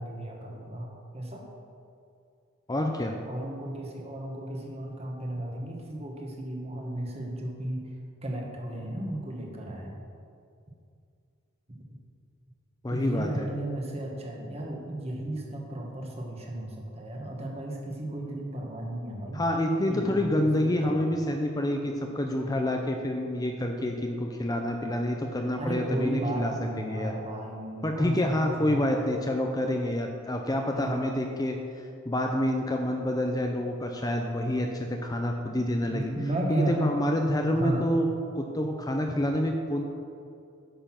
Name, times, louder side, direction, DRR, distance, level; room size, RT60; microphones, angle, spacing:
voice 1, 0.0-1.5 3.2-7.9 8.2-10.0 11.7-11.8 12.9-19.4 19.9-21.0 25.6-28.9 30.7-31.2 35.9-36.8 37.0-37.1 37.5-37.9, right 1 dB, 30° right, 0 dB, 1.5 m, -34 dB
voice 2, 2.7-3.1 12.8-13.5 19.3-26.5 26.8-27.1 27.8-36.1 36.5-38.1 38.3-39.8, left 1 dB, 15° left, 3 dB, 0.5 m, -28 dB
10.5 x 6.8 x 5.9 m, 2.5 s
head